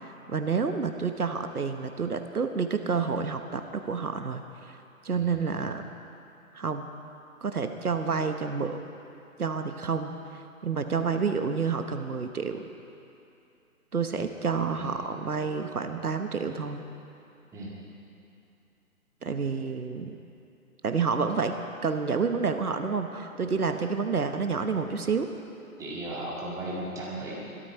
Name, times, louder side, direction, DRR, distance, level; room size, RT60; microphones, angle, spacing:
voice 1, 0.0-4.8 5.0-5.9 6.5-6.9 7.4-8.8 9.4-12.7 13.9-16.8 19.2-20.2 20.8-21.5 21.8-25.3, right 5 dB, 80° right, 7 dB, 1.3 m, -29 dB
voice 2, 25.8-27.4, right 1 dB, 5° right, -5 dB, 2.0 m, -36 dB
22.5 x 13.0 x 4.6 m, 2.7 s
figure-of-eight pair, 140°, 44 cm